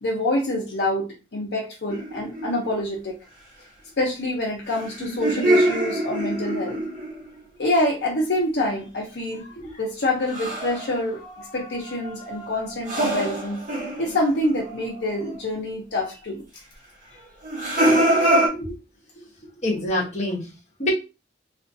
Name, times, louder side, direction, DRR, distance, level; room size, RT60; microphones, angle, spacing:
voice 1, 0.0-3.1 4.0-6.8 7.6-9.5 9.8-13.6 14.0-16.4, left 1 dB, 65° left, -2 dB, 0.6 m, -26 dB
sound 1, 1.9-2.6 4.7-7.3 10.3-10.9 11.2-14.9 15.3-15.4 17.4-18.5, right 1 dB, 40° right, 1.0 m, -24 dB
voice 2, 18.1-18.8 19.6-20.5 20.8-20.9, left 1 dB, 35° left, -5 dB, 0.9 m, -27 dB
2.5 x 2.3 x 2.6 m, 0.28 s
head